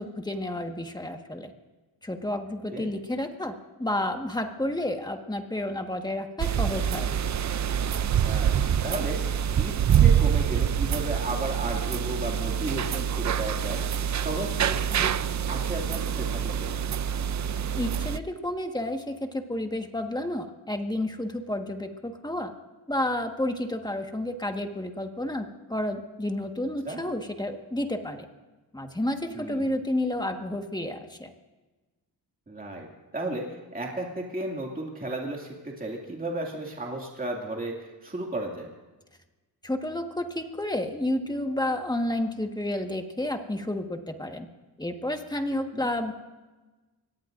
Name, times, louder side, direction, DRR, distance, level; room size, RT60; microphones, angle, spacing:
voice 1, 0.0-1.5 2.0-3.5 3.8-7.1 17.8-22.5 22.9-28.3 28.7-31.3 39.6-44.5 44.8-46.1, left 1 dB, 10° left, 4 dB, 1.5 m, -31 dB
sound 1, 6.4-18.2, right 8 dB, 45° right, 0.5 m, -26 dB
voice 2, 8.2-8.6 8.8-9.2 9.6-13.8 14.2-16.9 26.8-27.0 29.3-29.8 32.5-32.9 33.1-33.5 33.7-38.7 45.7-45.9, right 2 dB, 20° right, -1 dB, 2.4 m, -34 dB
25.0 x 18.5 x 2.6 m, 1.2 s
cardioid pair, 85°, 39 cm